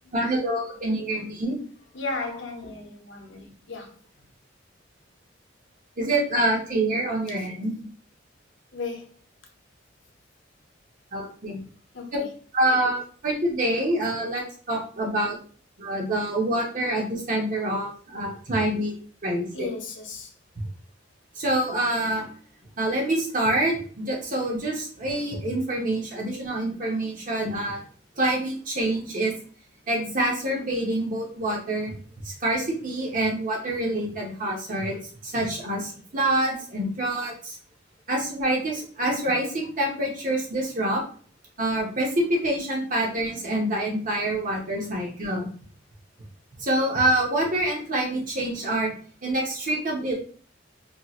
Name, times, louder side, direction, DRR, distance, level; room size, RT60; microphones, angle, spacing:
voice 1, 0.1-1.6 6.0-7.9 11.1-11.6 12.1-12.2 12.5-15.4 15.8-18.9 19.2-19.4 21.4-22.3 22.8-27.8 28.2-29.3 29.9-31.9 32.2-35.0 35.2-37.6 38.1-41.0 41.6-45.5 46.6-48.9 49.2-50.1, right 1 dB, 45° right, 0.9 m, -26 dB
voice 2, 1.9-3.9 7.4-7.5 8.7-9.1 11.9-12.3 19.5-20.3, left 3 dB, 70° left, 0.7 m, -35 dB
3.0 x 2.8 x 2.4 m
head